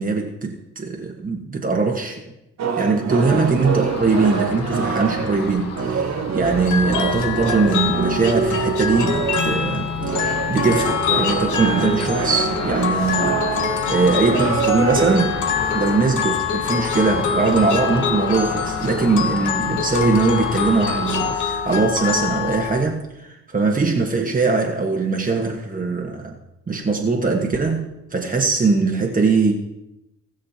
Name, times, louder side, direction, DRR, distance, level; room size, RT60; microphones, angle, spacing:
voice 1, 0.0-2.2 2.8-15.4 15.7-26.4 26.7-29.5, right 4 dB, 25° right, 0 dB, 1.4 m, -21 dB
sound 1, 2.6-15.3, right 7 dB, 60° right, 1.3 m, -26 dB
Ocean, 3.1-21.3, left 4 dB, 55° left, 1.3 m, -33 dB
sound 2, 6.4-22.8, left 6 dB, 75° left, 1.3 m, -25 dB
19.5 x 6.6 x 2.9 m, 0.92 s
cardioid pair, 90°, 30 cm